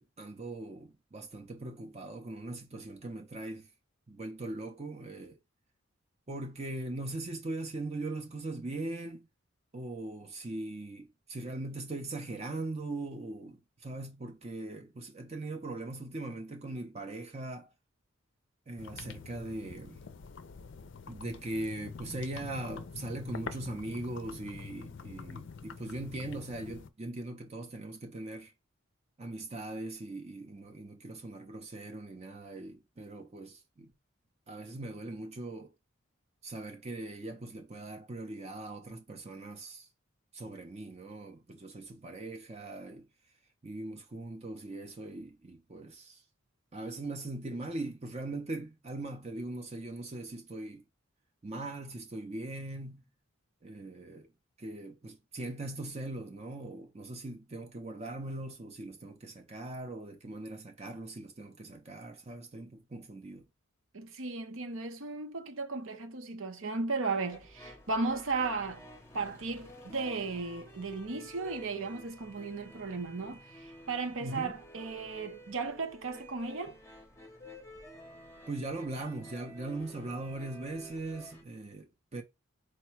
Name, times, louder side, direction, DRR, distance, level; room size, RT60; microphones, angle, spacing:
voice 1, 0.0-3.7 4.1-5.4 6.3-9.3 9.7-17.7 18.7-20.0 21.1-28.5 29.2-33.9 34.5-35.7 36.4-39.9 40.3-43.1 43.6-46.2 46.7-50.8 51.4-53.1 53.6-54.3 54.6-63.5 74.2-74.6 78.5-82.2, right 2 dB, 30° right, 0.6 m, -40 dB
sound 1, 18.8-26.9, left 5 dB, 60° left, 0.4 m, -45 dB
voice 2, 63.9-68.9 69.1-76.8, right 3 dB, 75° right, 0.9 m, -35 dB
sound 2, 67.3-81.4, equal, 10° left, 0.7 m, -51 dB
4.4 x 2.2 x 4.4 m
head